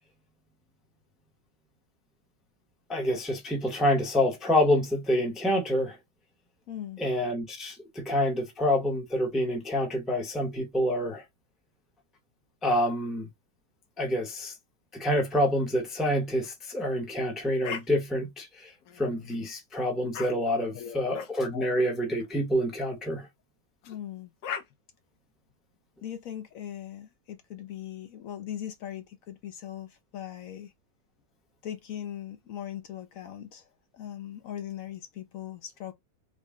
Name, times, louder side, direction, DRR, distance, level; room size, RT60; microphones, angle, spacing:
voice 1, 2.9-6.0 7.0-11.2 12.6-13.3 14.0-14.5 14.9-23.3, left 1 dB, ahead, 0.6 m, -27 dB
voice 2, 6.7-7.0 20.7-21.2 21.5-21.7 23.9-24.3 26.0-30.7 31.6-33.7 33.9-35.9, left 11 dB, 70° left, 1.0 m, -39 dB
sound 1, 17.6-17.9 18.8-19.3 20.1-20.3 21.1-21.3 22.2-22.4 23.8-24.0 24.4-24.6, left 8 dB, 85° left, 1.3 m, -37 dB
3.8 x 2.1 x 3.5 m
omnidirectional pair, 1.7 m